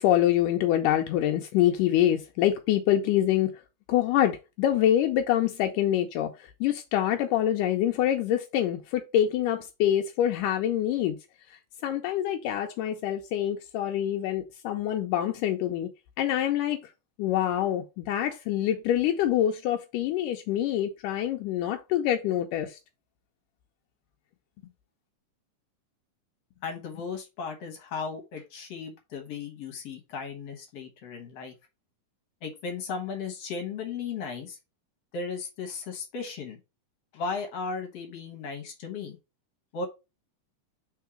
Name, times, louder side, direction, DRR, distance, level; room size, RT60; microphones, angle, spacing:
voice 1, 0.0-3.5 3.9-11.2 11.8-15.9 16.2-16.8 17.2-22.8, left 11 dB, 80° left, 2.1 m, -25 dB
voice 2, 26.6-31.5 32.4-34.6 35.1-36.6 37.1-39.2 39.7-39.9, left 5 dB, 60° left, 1.9 m, -36 dB
4.6 x 4.3 x 4.8 m
omnidirectional pair, 3.9 m